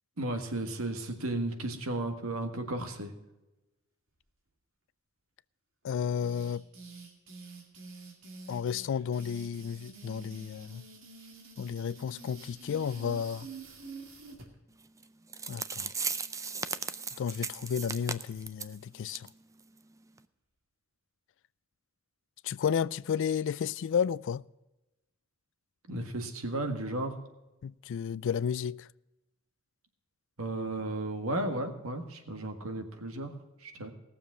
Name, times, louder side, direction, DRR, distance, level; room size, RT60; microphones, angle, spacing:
voice 1, 0.2-3.1 25.9-27.2 30.4-33.3 33.6-33.9, right 1 dB, 85° right, 1.7 m, -34 dB
voice 2, 5.8-6.6 8.5-10.8 11.6-13.5 15.5-15.9 17.2-19.3 22.4-24.4 27.6-28.9, left 7 dB, 65° left, 0.3 m, -32 dB
sound 1, 6.2-14.5, right 3 dB, 70° right, 2.4 m, -48 dB
sound 2, 15.0-15.1 15.3-18.7 19.1-19.3 19.6-19.7 20.2-20.3, right 5 dB, 15° right, 0.4 m, -36 dB
18.0 x 7.2 x 6.1 m
head